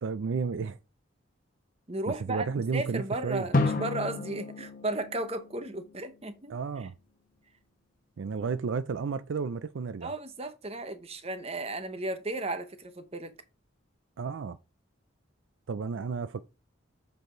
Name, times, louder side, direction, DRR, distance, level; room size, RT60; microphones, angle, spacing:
voice 1, 0.0-0.8 2.1-3.5 6.5-6.9 8.2-10.1 14.2-14.6 15.7-16.4, right 5 dB, 65° right, 0.4 m, -32 dB
voice 2, 1.9-6.9 10.0-13.3, right 2 dB, 30° right, 0.8 m, -35 dB
Drum, 3.5-6.2, left 3 dB, 40° left, 1.1 m, -31 dB
7.7 x 4.8 x 3.8 m
head